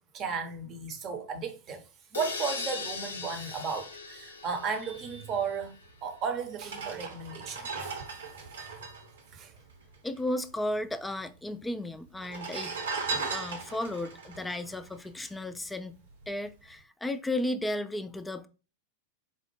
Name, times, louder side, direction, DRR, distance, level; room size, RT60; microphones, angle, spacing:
voice 1, 0.1-1.8 2.1-8.0 8.7-8.8 9.3-9.5, right 5 dB, 35° right, 0.7 m, -35 dB
sound 1, 2.1-5.9, left 4 dB, 70° left, 0.5 m, -39 dB
sound 2, 5.9-6.0 6.5-10.2 10.5-10.6 10.8-11.5 12.1-15.6 16.1-16.3, right 4 dB, 65° right, 0.8 m, -37 dB
voice 2, 10.0-12.8 13.1-16.0 16.3-18.5, left 1 dB, 10° left, 0.3 m, -34 dB
4.3 x 2.0 x 3.1 m
figure-of-eight pair, 90°, 0 cm